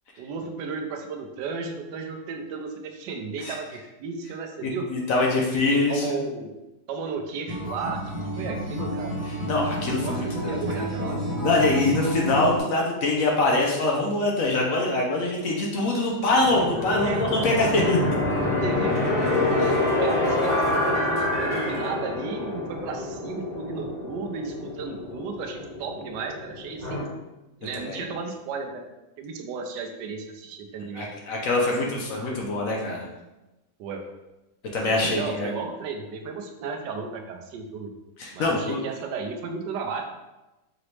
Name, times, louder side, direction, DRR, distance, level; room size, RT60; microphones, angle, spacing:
voice 1, 0.2-4.9 5.5-6.5 6.9-9.1 10.0-11.2 13.6-13.7 17.0-17.2 18.6-19.0 20.0-27.1 27.6-28.8 29.2-31.1 33.8-34.0 34.9-37.9 38.3-40.0, right 4 dB, 85° right, 3 dB, 1.2 m, -34 dB
voice 2, 4.6-6.1 9.5-18.0 19.6-20.0 27.9-28.1 30.9-33.1 34.7-35.5 38.2-38.8, left 2 dB, 60° left, -1 dB, 1.0 m, -24 dB
Acoustic guitar, 7.5-12.6, equal, 65° right, 1.7 m, -30 dB
sound 1, 16.4-27.0, left 2 dB, 30° left, 1.5 m, -27 dB
5.0 x 2.9 x 3.1 m, 1.0 s
omnidirectional pair, 1.8 m